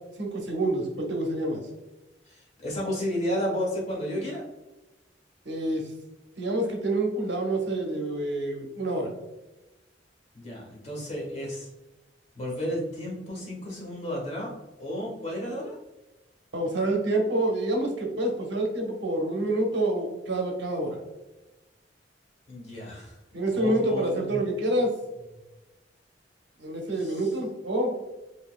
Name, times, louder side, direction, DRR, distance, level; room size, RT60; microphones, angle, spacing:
voice 1, 0.2-1.6 5.4-5.9 6.4-9.1 16.5-21.0 23.3-24.9 26.6-27.9, right 1 dB, 70° right, 1 dB, 1.0 m, -27 dB
voice 2, 2.2-4.4 10.3-11.7 12.3-14.5 14.8-15.8 22.5-23.2 23.5-24.6 27.0-27.3, equal, 35° left, -4 dB, 1.5 m, -32 dB
5.3 x 2.8 x 2.2 m, 1.0 s
head